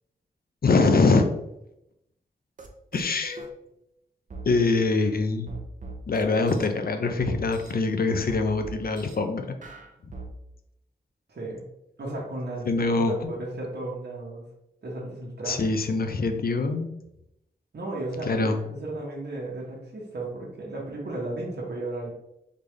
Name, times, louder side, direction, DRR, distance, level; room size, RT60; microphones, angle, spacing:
voice 1, 0.6-1.3 2.9-3.4 4.5-5.6 6.1-9.5 10.0-10.1 12.7-13.3 15.5-16.9 18.2-18.6, left 3 dB, 60° left, 6 dB, 0.6 m, -23 dB
sound 1, 2.6-2.7 2.9-3.5 4.3-4.5 5.5-6.7 7.2-7.7 8.3-9.2 9.6-10.3, right 2 dB, 50° right, 0.7 m, -40 dB
voice 2, 11.3-11.6 12.0-14.4 14.8-15.6 17.7-22.1, right 2 dB, 75° right, -4 dB, 1.1 m, -34 dB
3.9 x 3.4 x 3.2 m, 0.82 s
wide cardioid pair, 85°, 17 cm